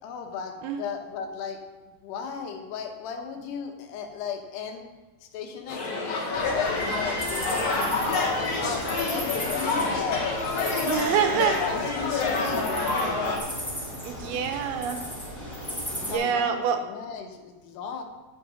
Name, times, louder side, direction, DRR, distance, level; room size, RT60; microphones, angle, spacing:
voice 1, 0.0-1.6 2.0-4.8 5.2-12.5 15.9-18.0, left 6 dB, 85° left, 3 dB, 3.2 m, -36 dB
sound 1, 5.7-13.4, left 3 dB, 60° left, 1.4 m, -27 dB
sound 2, 6.3-16.1, left 1 dB, 10° left, 0.9 m, -36 dB
voice 2, 10.9-11.6 14.0-15.0 16.0-16.8, right 8 dB, 75° right, 5 dB, 2.6 m, -26 dB
9.2 x 7.7 x 5.1 m, 1.3 s
omnidirectional pair, 4.7 m